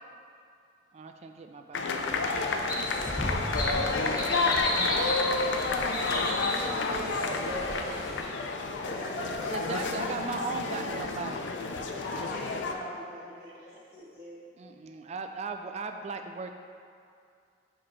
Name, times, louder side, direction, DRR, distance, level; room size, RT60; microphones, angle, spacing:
voice 1, 0.9-2.3 3.2-3.4 3.7-4.8 9.5-11.5 14.6-16.6, right 4 dB, 35° right, 6 dB, 0.3 m, -38 dB
sound 1, 1.7-12.7, left 3 dB, 75° left, 0.4 m, -30 dB
sound 2, 2.0-8.2, left 1 dB, 20° left, 0.9 m, -34 dB
voice 2, 2.9-4.4 8.8-9.6 11.9-14.4, left 1 dB, 60° left, -11 dB, 1.3 m, -42 dB
voice 3, 6.2-8.3 13.4-13.7, right 1 dB, 85° right, -2 dB, 1.0 m, -39 dB
5.0 x 4.2 x 4.6 m, 2.4 s
head